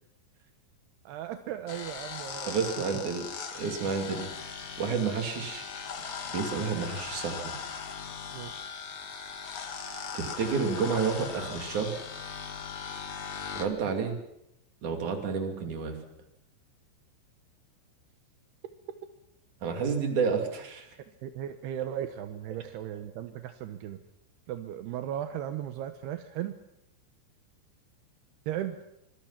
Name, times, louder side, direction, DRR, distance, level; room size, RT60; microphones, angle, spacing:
voice 1, 1.1-2.7 8.3-8.5 21.2-24.0 24.5-26.6 28.5-28.8, right 11 dB, 75° right, 8 dB, 2.5 m, -36 dB
sound 1, 1.7-13.6, left 6 dB, 50° left, 2.1 m, -39 dB
voice 2, 2.5-3.3 3.5-4.3 4.8-5.6 6.3-7.5 10.1-12.0 13.6-14.2 14.8-16.0 19.6-20.9, right 5 dB, 45° right, 3 dB, 3.8 m, -30 dB
25.5 x 24.0 x 5.9 m, 0.84 s
omnidirectional pair, 5.8 m